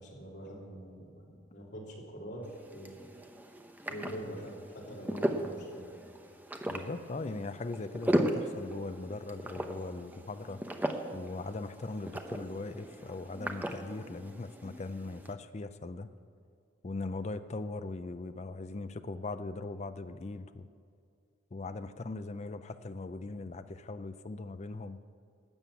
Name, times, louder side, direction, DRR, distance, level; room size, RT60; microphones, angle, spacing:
voice 1, 0.0-3.0 3.9-5.9, equal, 60° left, -4 dB, 3.1 m, -44 dB
sound 1, 2.4-15.3, equal, 10° right, 0.7 m, -37 dB
voice 2, 6.7-10.6 11.1-16.1 16.8-20.7 21.5-25.0, left 3 dB, 35° left, 10 dB, 0.5 m, -40 dB
12.5 x 7.7 x 8.3 m, 2.3 s
head